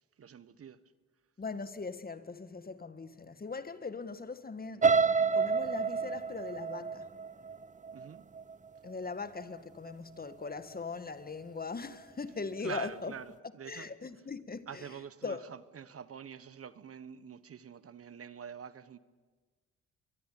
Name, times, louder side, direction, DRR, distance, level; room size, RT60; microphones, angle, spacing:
voice 1, 0.2-0.8 7.9-8.3 12.6-13.9 14.7-19.0, right 7 dB, 45° right, 1.2 m, -46 dB
voice 2, 1.4-4.9 5.3-7.1 8.8-13.1 13.7-14.8 15.2-15.4, left 4 dB, 30° left, 1.7 m, -40 dB
sound 1, 4.8-8.8 9.2-9.6 9.9-10.0, right 5 dB, 25° right, 0.7 m, -29 dB
23.0 x 23.0 x 8.7 m
supercardioid pair, 60°, 32 cm